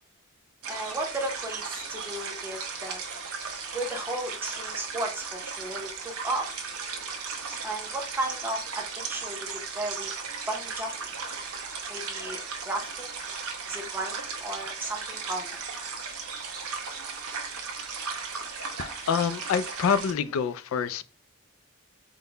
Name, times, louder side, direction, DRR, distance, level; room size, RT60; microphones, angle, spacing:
sound 1, 0.6-20.1, right 5 dB, 90° right, 0.8 m, -36 dB
voice 1, 0.7-3.0 3.7-6.5 7.5-9.5 9.7-10.1 10.5-11.1 11.9-13.2 13.7-15.6, right 1 dB, 10° right, 0.6 m, -34 dB
voice 2, 18.8-21.0, left 6 dB, 75° left, 0.3 m, -27 dB
3.8 x 2.1 x 3.8 m
head